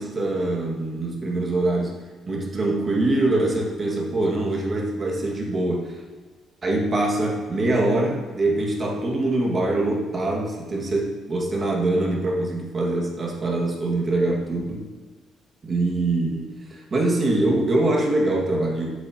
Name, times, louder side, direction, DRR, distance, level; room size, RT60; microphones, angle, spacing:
voice 1, 0.0-2.0 2.3-6.0 6.6-14.9 15.6-18.9, right 2 dB, 25° right, -1 dB, 1.8 m, -24 dB
14.0 x 8.0 x 2.9 m, 1.4 s
cardioid pair, 165°, 0 cm